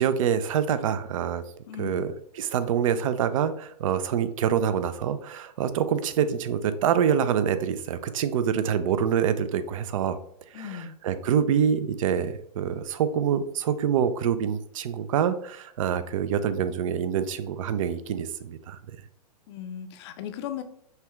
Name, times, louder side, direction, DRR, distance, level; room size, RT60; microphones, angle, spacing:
voice 1, 0.0-1.4 1.8-10.2 10.5-18.8, right 8 dB, 50° right, 12 dB, 0.4 m, -26 dB
voice 2, 1.7-2.0 10.5-11.0 19.5-20.6, left 9 dB, 40° left, 9 dB, 0.5 m, -37 dB
5.6 x 2.3 x 3.0 m, 0.66 s
hypercardioid pair, 125°, 21 cm